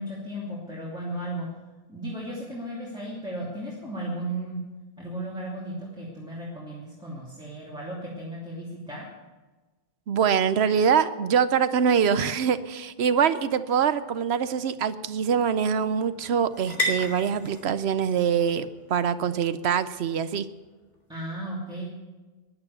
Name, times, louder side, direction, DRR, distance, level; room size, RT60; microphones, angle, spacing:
voice 1, 0.0-1.5 1.9-4.6 5.0-9.0 21.1-21.9, right 1 dB, 5° right, -6 dB, 2.8 m, -35 dB
voice 2, 10.1-20.5, right 7 dB, 90° right, 13 dB, 1.0 m, -24 dB
sound 1, 13.2-21.0, left 1 dB, 45° left, 3.7 m, -38 dB
15.0 x 11.0 x 7.0 m, 1.2 s
omnidirectional pair, 1.1 m